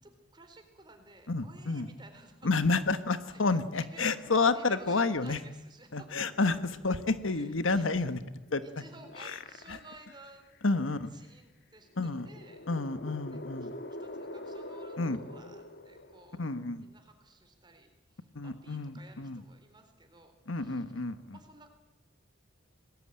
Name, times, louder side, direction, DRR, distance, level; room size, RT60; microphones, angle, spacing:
voice 1, 0.0-2.5 3.3-3.4 3.8-4.1 4.5-6.1 6.4-6.5 7.2-7.8 8.6-10.5 11.1-12.6 13.3-13.7 14.0-16.4 16.8-20.8 21.3-21.7, right 2 dB, 25° right, 6 dB, 4.0 m, -55 dB
voice 2, 1.3-1.9 2.4-5.4 5.9-8.2 8.5-8.6 9.2-9.4 9.7-9.8 10.6-11.1 12.0-12.3 12.7-13.7 15.0-15.2 16.4-16.9 18.3-19.4 20.5-21.4, left 3 dB, 90° left, 11 dB, 1.3 m, -30 dB
sound 1, 8.5-10.1 10.5-10.6 11.9-16.7, left 1 dB, 55° left, 1.5 m, -45 dB
26.0 x 20.0 x 8.8 m, 1.1 s
head